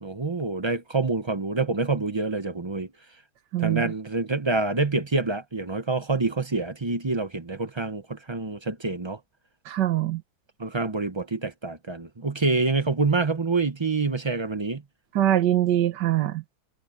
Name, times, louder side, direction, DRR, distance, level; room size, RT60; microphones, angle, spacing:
voice 1, 0.0-2.9 3.6-9.2 10.6-14.8, right 3 dB, 30° right, 0.5 m, -27 dB
voice 2, 3.5-3.9 9.7-10.2 15.2-16.4, right 12 dB, 70° right, 1.8 m, -23 dB
omnidirectional pair, 2.0 m